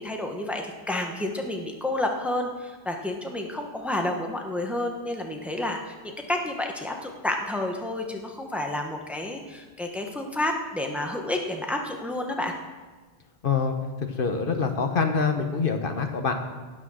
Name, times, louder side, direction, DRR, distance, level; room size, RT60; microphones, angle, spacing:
voice 1, 0.0-12.5, left 1 dB, ahead, 2 dB, 1.1 m, -30 dB
voice 2, 13.4-16.3, left 5 dB, 60° left, 6 dB, 1.1 m, -25 dB
17.5 x 6.3 x 6.4 m, 1.3 s
omnidirectional pair, 1.0 m